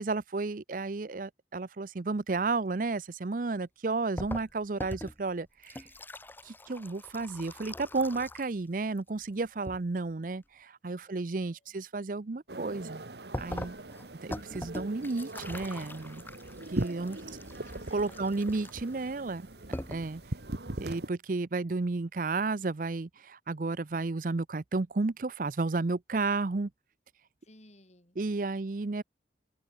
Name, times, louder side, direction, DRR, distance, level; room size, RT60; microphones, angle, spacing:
voice 1, 0.0-5.9 6.4-13.0 13.4-13.8 14.2-16.2 16.7-17.2 17.9-19.5 19.9-20.2 20.8-26.7 28.2-29.0, right 3 dB, 45° right, 0.6 m, -32 dB
sound 1, 4.2-8.6 8.9-9.8 13.3-19.0 19.5-19.6 19.7-20.2, left 1 dB, 10° left, 1.0 m, -43 dB
voice 2, 10.8-11.7 16.6-18.5 19.6-19.8 27.4-28.6, left 2 dB, 40° left, 4.4 m, -60 dB
sound 2, 12.5-21.1, right 1 dB, 65° right, 1.8 m, -40 dB
head